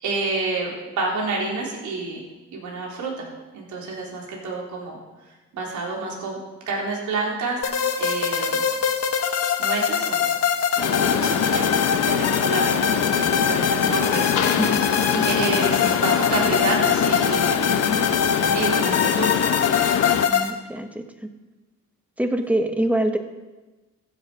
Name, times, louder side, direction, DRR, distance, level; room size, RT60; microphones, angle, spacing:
voice 1, 0.0-2.2 2.5-3.3 3.5-5.0 5.5-6.4 6.7-7.6 8.0-8.6 9.6-10.3 10.8-14.6 15.3-17.7 18.5-19.4, right 3 dB, 75° right, -2 dB, 3.8 m, -29 dB
sound 1, 7.6-20.5, left 7 dB, 55° left, 1.2 m, -23 dB
Mechanisms, 10.8-20.3, left 8 dB, 75° left, 1.0 m, -23 dB
voice 2, 14.6-14.9 15.1-15.3 20.3-21.3 22.2-23.2, right 1 dB, 5° right, 6 dB, 1.3 m, -25 dB
15.0 x 7.4 x 5.1 m, 1.2 s
cardioid pair, 90°, 30 cm